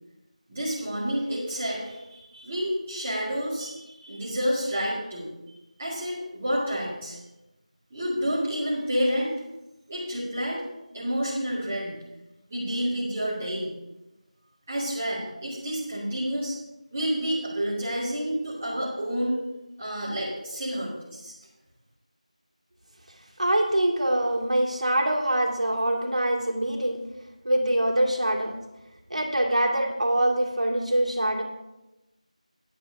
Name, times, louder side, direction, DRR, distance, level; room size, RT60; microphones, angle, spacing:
voice 1, 0.5-5.3 5.8-7.2 7.9-9.3 9.9-10.6 10.9-12.0 12.5-13.7 14.7-16.6 16.9-19.4 19.8-21.3, equal, 10° right, -10 dB, 1.7 m, -29 dB
voice 2, 23.4-27.0 27.4-28.5 29.1-31.4, right 1 dB, 65° right, 0 dB, 2.4 m, -24 dB
20.0 x 7.3 x 2.7 m, 0.98 s
figure-of-eight pair, 175°, 4 cm